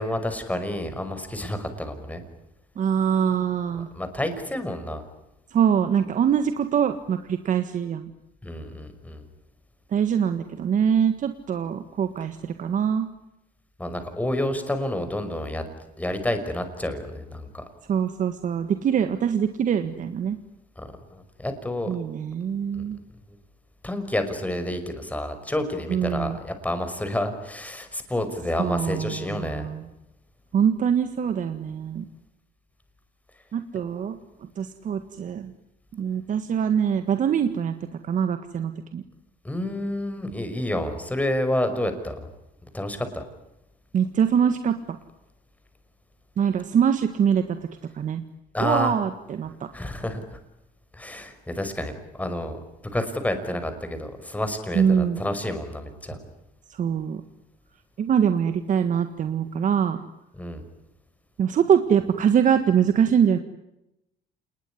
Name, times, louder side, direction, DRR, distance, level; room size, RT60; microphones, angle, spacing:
voice 1, 0.0-2.2 3.9-5.0 8.4-9.2 13.8-15.6 16.0-17.7 20.8-22.0 22.7-22.8 23.8-29.7 39.4-42.3 42.7-43.2 48.5-48.9 49.7-50.4 50.9-51.9 52.2-52.6 52.9-56.2 60.3-60.6, left 1 dB, 10° left, 8 dB, 5.5 m, -29 dB
voice 2, 2.8-3.9 5.5-8.1 9.9-13.1 17.9-20.4 21.9-23.0 25.9-26.4 28.6-29.8 30.5-32.0 33.5-34.2 34.6-35.5 35.9-37.7 38.0-39.0 43.9-44.8 46.4-47.6 47.9-48.2 48.6-49.7 54.7-55.2 56.7-57.2 58.0-60.0 61.4-63.4, right 8 dB, 50° right, 9 dB, 1.7 m, -23 dB
28.0 x 21.0 x 9.9 m, 0.89 s
cardioid pair, 110°, 17 cm